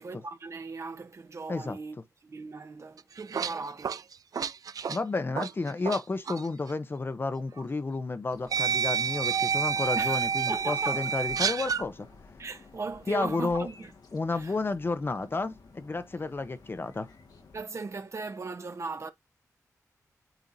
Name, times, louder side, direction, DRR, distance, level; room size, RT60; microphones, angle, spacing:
voice 1, 0.0-4.0 10.0-11.1 12.4-13.9 14.3-14.6 17.5-19.1, right 3 dB, 50° right, 1.0 m, -38 dB
sound 1, 3.0-6.0 6.3-6.5 7.6-7.7 8.5-11.8, right 7 dB, 75° right, 0.4 m, -29 dB
voice 2, 4.9-12.1 13.1-13.7 14.1-17.1, left 3 dB, 35° left, 0.8 m, -31 dB
sound 2, 8.3-17.6, left 4 dB, 90° left, 1.7 m, -53 dB
9.1 x 4.5 x 2.7 m
wide cardioid pair, 95°, 6 cm